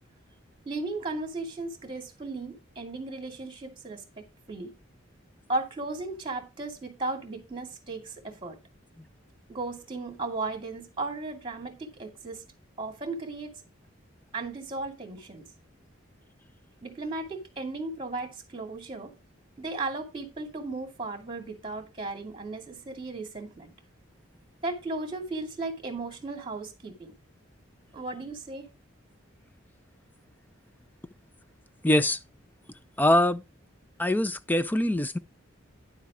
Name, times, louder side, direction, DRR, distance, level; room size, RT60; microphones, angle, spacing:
voice 1, 0.7-4.7 5.5-8.6 9.5-12.4 12.8-13.6 14.3-15.4 16.8-19.1 19.6-23.7 24.6-27.1 27.9-28.7, right 3 dB, 25° right, 2.5 m, -35 dB
voice 2, 31.8-32.2 33.0-33.4 34.0-35.2, left 1 dB, 10° left, 0.5 m, -23 dB
10.5 x 7.3 x 3.7 m
head